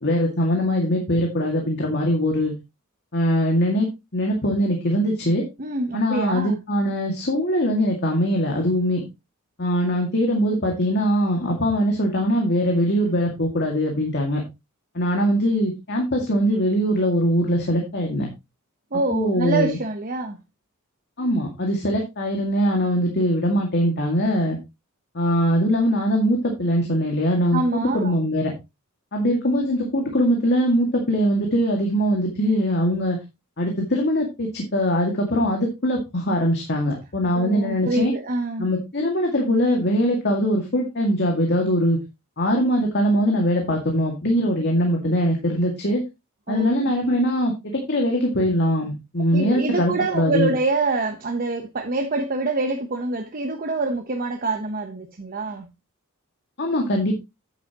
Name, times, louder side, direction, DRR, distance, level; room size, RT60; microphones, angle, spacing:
voice 1, 0.0-2.5 3.1-3.9 4.1-5.4 5.9-9.0 9.6-14.4 14.9-18.3 19.1-19.8 21.2-24.6 25.1-28.5 29.1-33.2 33.6-38.1 38.6-42.0 42.4-46.0 46.5-50.5 56.6-57.2, equal, 50° left, 2.1 m, -22 dB
voice 2, 5.6-6.6 18.9-20.4 27.5-28.1 37.3-38.7 46.5-46.9 49.3-55.7, right 2 dB, 40° right, 1.0 m, -26 dB
9.3 x 8.9 x 2.9 m
head